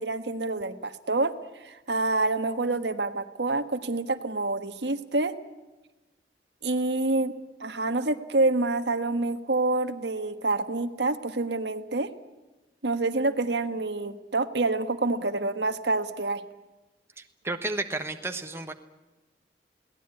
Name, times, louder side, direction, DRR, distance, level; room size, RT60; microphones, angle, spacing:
voice 1, 0.0-1.3 1.6-5.3 6.6-7.3 7.6-12.1 12.8-16.4, right 2 dB, 80° right, 8 dB, 1.5 m, -27 dB
voice 2, 17.2-18.7, right 2 dB, 15° right, 6 dB, 1.2 m, -32 dB
22.0 x 18.0 x 9.7 m, 1.1 s
head